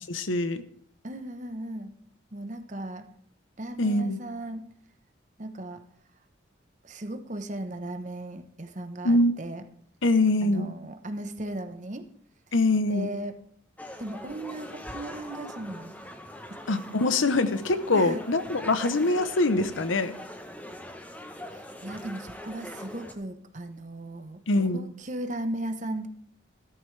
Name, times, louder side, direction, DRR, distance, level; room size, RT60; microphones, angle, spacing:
voice 1, 0.1-0.6 3.8-4.2 9.0-9.3 10.0-10.7 12.5-13.1 16.7-20.1 24.5-24.9, left 2 dB, 85° left, 12 dB, 0.9 m, -24 dB
voice 2, 1.0-1.9 2.3-3.1 3.6-4.7 5.4-5.8 6.8-9.6 10.4-12.1 12.9-13.3 14.0-15.9 17.9-18.2 21.5-24.4 24.7-26.1, right 1 dB, 40° right, 7 dB, 1.0 m, -36 dB
sound 1, 13.8-23.1, left 1 dB, 10° left, 0.9 m, -42 dB
14.5 x 12.5 x 3.3 m, 0.63 s
head